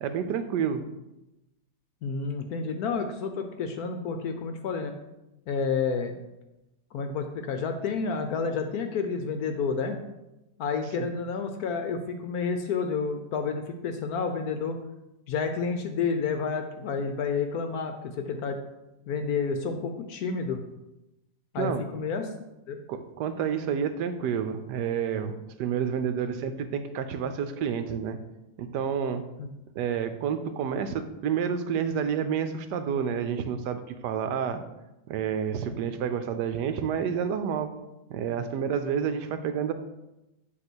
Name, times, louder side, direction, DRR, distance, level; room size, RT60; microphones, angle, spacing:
voice 1, 0.0-0.8 11.0-11.1 21.6-21.8 22.9-28.2 28.6-29.2 29.7-34.6 35.1-37.7 38.1-39.7, right 7 dB, 80° right, 9 dB, 1.2 m, -29 dB
voice 2, 2.0-4.9 5.5-6.2 6.9-10.0 10.6-14.8 15.3-18.6 19.1-20.6 21.5-22.3 22.7-22.8 29.4-29.5, left 5 dB, 70° left, 6 dB, 1.0 m, -30 dB
7.9 x 3.0 x 6.1 m, 0.95 s
omnidirectional pair, 1.8 m